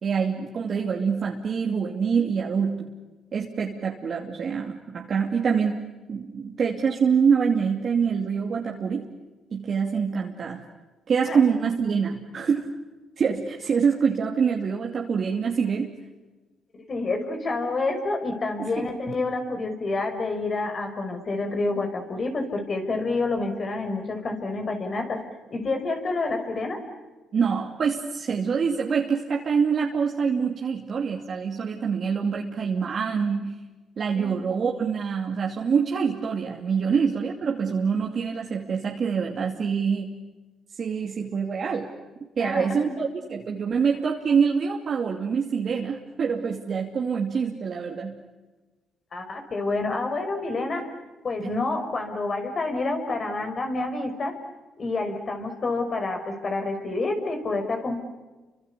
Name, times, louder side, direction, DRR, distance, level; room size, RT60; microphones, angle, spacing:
voice 1, 0.0-2.9 3.3-5.8 6.1-9.1 9.5-10.6 11.1-12.7 13.2-15.9 18.6-18.9 27.3-33.5 34.0-40.2 40.8-41.9 42.4-48.2 51.4-51.5, right 6 dB, 50° right, 0 dB, 2.7 m, -25 dB
voice 2, 16.7-25.2 25.5-26.8 34.1-34.4 36.9-37.0 42.4-43.0 49.1-50.9 51.2-54.4 54.8-58.0, left 3 dB, 45° left, 5 dB, 4.9 m, -28 dB
29.5 x 25.5 x 6.9 m, 1.2 s
cardioid pair, 90°, 0 cm